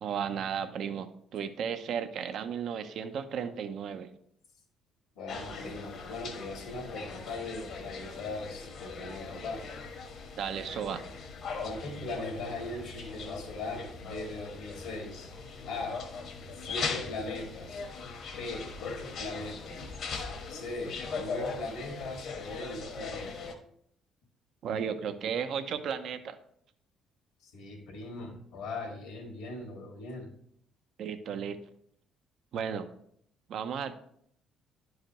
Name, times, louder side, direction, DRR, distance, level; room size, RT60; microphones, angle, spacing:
voice 1, 0.0-4.1 10.4-11.0 24.6-26.4 31.0-31.6 32.5-32.9 33.5-34.0, right 7 dB, 65° right, 10 dB, 0.6 m, -34 dB
voice 2, 5.2-9.6 11.6-15.3 15.7-16.0 16.6-17.8 18.4-19.9 20.5-23.5 27.4-30.3, left 2 dB, 80° left, 1 dB, 2.0 m, -40 dB
ER corner, 5.3-23.5, left 4 dB, 65° left, 1.3 m, -40 dB
10.5 x 4.8 x 3.0 m, 0.67 s
supercardioid pair, 70°, 0 cm